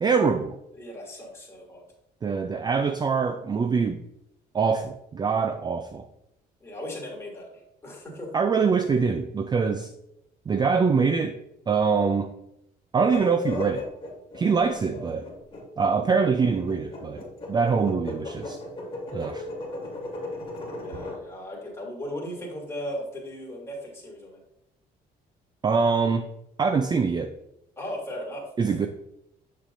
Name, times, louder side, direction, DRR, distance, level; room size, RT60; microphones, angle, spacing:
voice 1, 0.0-0.6 2.2-4.0 4.5-6.1 8.3-9.9 10.5-11.4 11.7-12.3 12.9-13.9 14.3-15.3 15.8-18.6 19.1-19.4 25.6-26.3 26.6-27.3 28.6-28.9, right 5 dB, 25° right, 8 dB, 0.4 m, -24 dB
voice 2, 0.7-1.8 6.6-8.3 20.6-24.4 27.8-28.8, equal, 15° left, -3 dB, 2.9 m, -37 dB
sound 1, 13.0-21.2, left 2 dB, 30° left, 2.5 m, -36 dB
7.4 x 7.1 x 2.6 m, 0.82 s
cardioid pair, 110°, 17 cm